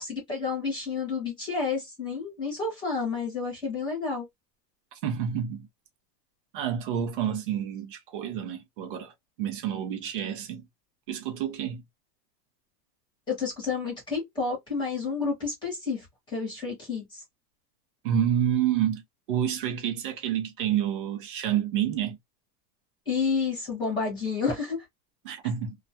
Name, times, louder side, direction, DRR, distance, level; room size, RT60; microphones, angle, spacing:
voice 1, 0.0-4.3 13.3-17.2 23.1-24.8, left 4 dB, 10° left, 0.9 m, -30 dB
voice 2, 5.0-5.7 6.5-9.1 9.4-10.7 11.1-11.8 18.0-19.0 19.3-22.2 25.2-25.8, right 9 dB, 35° right, 0.5 m, -28 dB
2.3 x 2.1 x 2.6 m
supercardioid pair, 175°, 50 cm